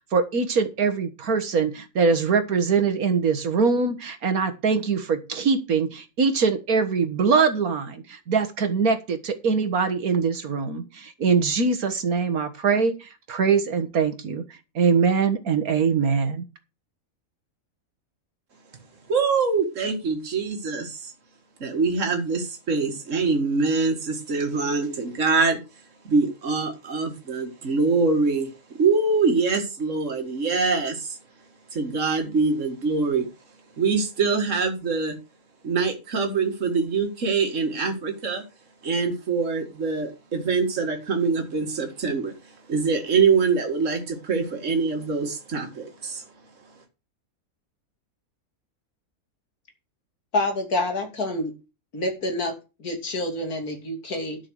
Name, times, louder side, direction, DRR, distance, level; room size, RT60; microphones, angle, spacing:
voice 1, 0.1-14.4 14.8-16.4, right 5 dB, 75° right, 9 dB, 2.0 m, -23 dB
voice 2, 19.1-21.1 21.6-25.6 26.0-31.2 31.7-33.3 33.8-35.2 35.6-38.4 38.8-46.3, right 4 dB, 55° right, 3 dB, 2.4 m, -24 dB
voice 3, 50.3-51.5 51.9-52.5 52.8-54.4, left 2 dB, 80° left, 3 dB, 3.3 m, -27 dB
12.0 x 6.3 x 6.5 m, 0.29 s
omnidirectional pair, 1.6 m